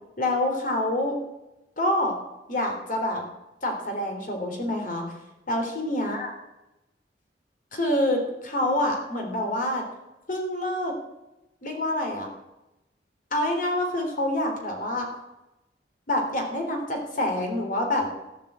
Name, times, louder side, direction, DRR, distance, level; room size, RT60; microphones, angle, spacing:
voice 1, 0.2-1.2 1.8-2.1 2.5-3.2 3.6-5.2 5.5-6.3 7.7-9.8 10.3-10.9 11.6-12.3 13.3-15.1 16.1-18.1, left 1 dB, 50° left, 3 dB, 3.4 m, -26 dB
14.5 x 10.5 x 8.0 m, 0.96 s
head